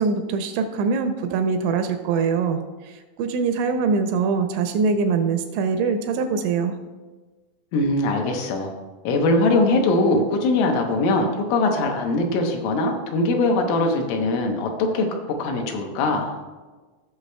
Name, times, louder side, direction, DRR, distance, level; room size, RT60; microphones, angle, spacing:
voice 1, 0.0-2.6 3.2-6.8, right 5 dB, 80° right, 7 dB, 2.9 m, -23 dB
voice 2, 7.7-8.7 9.0-16.4, left 2 dB, 80° left, 2 dB, 3.4 m, -21 dB
16.5 x 6.5 x 2.2 m, 1.3 s
omnidirectional pair, 5.6 m